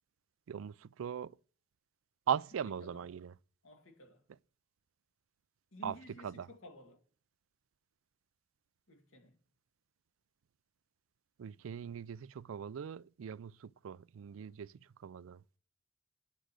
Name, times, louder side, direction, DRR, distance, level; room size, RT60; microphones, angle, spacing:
voice 1, 0.5-1.3 2.3-3.3 5.8-6.0 6.2-6.5 11.4-14.7 15.0-15.4, right 8 dB, 90° right, 0.4 m, -39 dB
voice 2, 3.6-4.2 5.7-7.0 8.9-9.4, left 1 dB, 85° left, 2.2 m, -53 dB
10.0 x 5.0 x 6.2 m
head